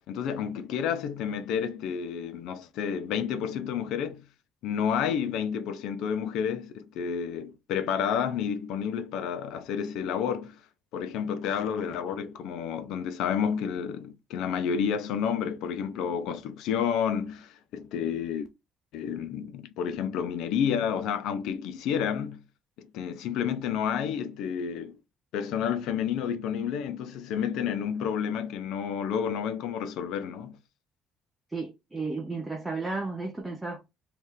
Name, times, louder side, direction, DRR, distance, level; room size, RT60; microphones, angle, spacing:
voice 1, 0.1-4.2 4.6-10.6 10.9-18.5 18.9-22.4 22.8-25.0 25.3-30.5, left 8 dB, 70° left, 0.6 m, -30 dB
voice 2, 31.5-33.8, right 3 dB, 10° right, 0.6 m, -33 dB
3.2 x 2.9 x 3.7 m
cardioid pair, 175°, 0 cm